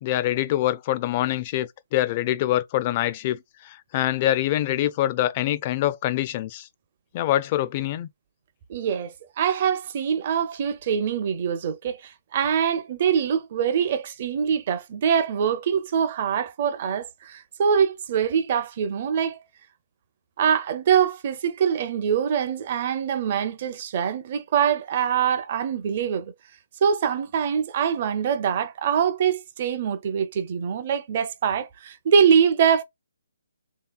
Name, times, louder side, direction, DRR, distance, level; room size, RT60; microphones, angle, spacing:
voice 1, 0.0-6.7 7.1-8.1, left 13 dB, 30° left, 0.4 m, -25 dB
voice 2, 8.7-19.4 20.4-26.3 26.8-32.8, right 7 dB, 40° right, 0.6 m, -24 dB
3.3 x 2.8 x 2.3 m
figure-of-eight pair, 140°, 0 cm